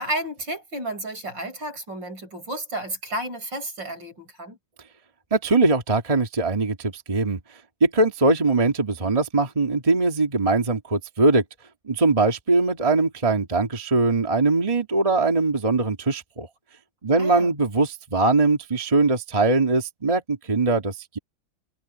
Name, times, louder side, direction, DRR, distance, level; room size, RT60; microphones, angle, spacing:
voice 1, 0.0-4.6 17.2-17.5, right 1 dB, 60° right, 8.1 m, -32 dB
voice 2, 5.3-7.4 7.8-11.4 11.9-16.5 17.0-21.2, right 3 dB, 20° right, 1.7 m, -21 dB
omnidirectional pair, 2.2 m